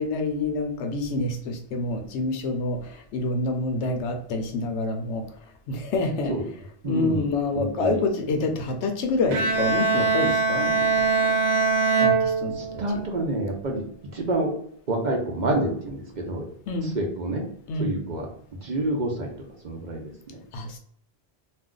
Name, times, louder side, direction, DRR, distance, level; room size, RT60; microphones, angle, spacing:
voice 1, 0.0-5.2 5.7-6.3 6.8-10.9 11.2-11.3 12.0-12.5 12.9-13.0 16.7-16.9 17.7-17.9 20.5-20.8, left 3 dB, 85° left, 4 dB, 0.9 m, -27 dB
voice 2, 6.8-8.0 12.5-13.8 14.1-14.5 14.9-16.4 16.8-17.4 17.8-18.3 18.6-19.3 19.6-20.4, right 1 dB, 50° right, 1 dB, 0.6 m, -28 dB
Bowed string instrument, 9.3-13.0, right 4 dB, 90° right, 0.9 m, -22 dB
2.5 x 2.3 x 3.6 m, 0.66 s
omnidirectional pair, 1.1 m